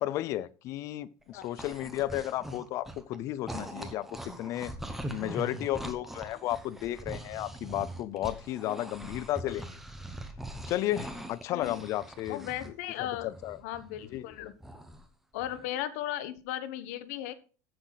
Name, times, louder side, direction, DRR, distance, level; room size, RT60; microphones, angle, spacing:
voice 1, 0.0-4.1 4.4-4.7 5.1-9.8 10.7-12.7 13.0-13.6 14.1-14.2, left 14 dB, 35° left, 0.5 m, -33 dB
sound 1, 1.2-3.2 3.5-12.7 13.0-15.0 15.4-15.6, right 1 dB, 5° right, 0.9 m, -42 dB
voice 2, 11.5-11.8 12.3-13.3 13.6-14.5 15.3-17.3, left 12 dB, 65° left, 1.1 m, -36 dB
14.5 x 6.0 x 4.0 m
cardioid pair, 170°, 9 cm